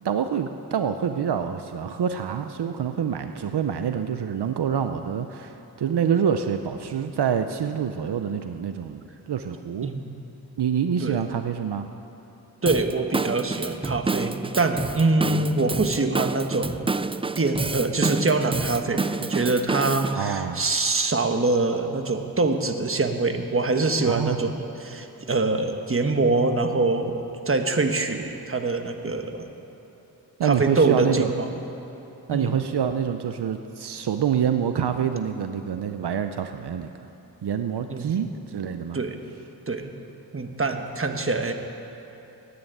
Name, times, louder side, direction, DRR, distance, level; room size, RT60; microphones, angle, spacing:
voice 1, 0.0-9.0 9.3-9.9 10.6-11.9 15.2-15.5 20.2-20.6 24.0-24.5 30.4-31.3 32.3-36.9 37.4-39.0, right 8 dB, 75° right, 8 dB, 0.7 m, -26 dB
voice 2, 9.8-10.2 11.0-11.2 12.6-16.8 17.4-29.5 30.4-31.5 32.3-32.6 37.9-38.1 38.9-39.2 39.7-39.9 40.3-41.5, right 3 dB, 30° right, 5 dB, 1.3 m, -24 dB
Drum kit / Drum, 12.7-20.2, right 3 dB, 15° right, 0.3 m, -29 dB
14.5 x 9.6 x 9.0 m, 3.0 s
wide cardioid pair, 70°, 40 cm